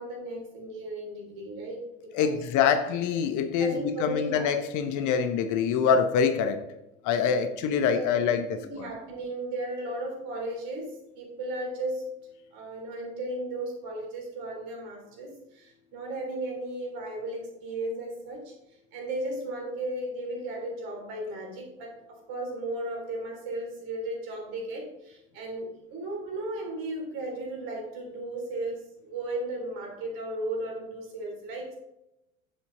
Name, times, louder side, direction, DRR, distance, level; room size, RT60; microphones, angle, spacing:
voice 1, 0.0-1.8 2.2-2.4 3.6-4.5 4.8-5.1 7.9-12.0 12.5-18.5 18.9-31.8, right 1 dB, 55° right, 3.6 m, -35 dB
voice 2, 2.1-3.7 4.0-6.6 7.0-8.5, left 7 dB, 45° left, 1.0 m, -25 dB
10.0 x 7.3 x 3.9 m
figure-of-eight pair, 70°, 42 cm